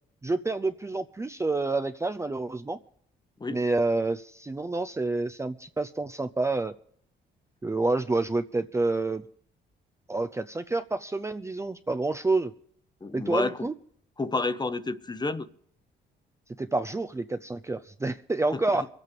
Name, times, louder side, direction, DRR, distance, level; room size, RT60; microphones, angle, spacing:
voice 1, 0.2-2.8 3.5-6.7 7.6-9.2 10.1-12.5 13.1-13.7 16.6-18.9, right 3 dB, 15° right, 0.5 m, -28 dB
voice 2, 13.0-13.7 14.2-15.5 18.5-18.6, left 3 dB, 20° left, 0.8 m, -30 dB
23.0 x 8.4 x 5.2 m
cardioid pair, 90°, 20 cm